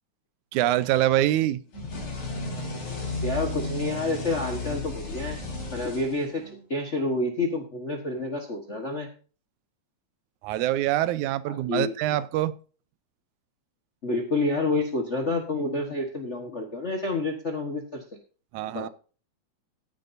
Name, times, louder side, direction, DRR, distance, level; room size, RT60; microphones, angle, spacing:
voice 1, 0.5-1.6 10.4-12.5 18.5-18.9, right 14 dB, 85° right, 2.1 m, -24 dB
sound 1, 1.7-6.6, left 2 dB, 70° left, 5.8 m, -33 dB
voice 2, 3.2-5.4 5.7-6.4 6.7-9.1 11.5-11.9 14.0-18.0 18.7-18.9, left 2 dB, 50° left, 0.8 m, -28 dB
15.0 x 10.0 x 2.6 m
omnidirectional pair, 3.4 m